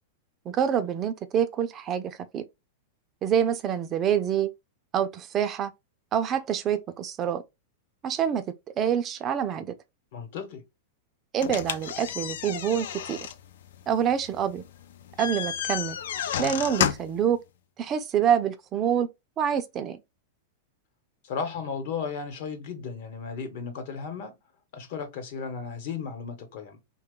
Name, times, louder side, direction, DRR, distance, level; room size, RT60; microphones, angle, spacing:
voice 1, 0.5-2.4 3.2-4.5 4.9-5.7 6.1-7.4 8.0-8.4 8.8-9.7 11.3-13.2 13.9-14.6 15.2-16.0 16.4-17.4 17.8-19.1 19.4-20.0, right 8 dB, 25° right, 0.4 m, -26 dB
voice 2, 10.1-10.6 21.2-24.4 24.7-26.8, left 6 dB, 60° left, 1.1 m, -35 dB
sound 1, 11.4-17.2, left 9 dB, 75° left, 0.4 m, -32 dB
3.2 x 2.3 x 3.6 m
supercardioid pair, 150°, 0 cm